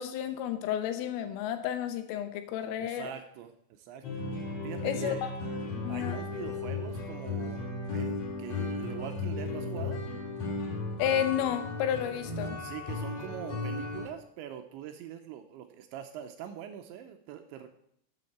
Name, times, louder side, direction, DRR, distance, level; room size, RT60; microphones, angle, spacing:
voice 1, 0.0-3.1 4.8-5.3 5.8-6.2 11.0-12.6, left 10 dB, 85° left, 8 dB, 3.6 m, -31 dB
voice 2, 2.8-4.0 4.6-5.3 5.9-10.0 12.6-17.7, right 10 dB, 80° right, 7 dB, 2.8 m, -43 dB
sound 1, 4.0-14.1, left 3 dB, 60° left, 1.6 m, -35 dB
13.0 x 8.1 x 4.3 m, 0.71 s
omnidirectional pair, 5.8 m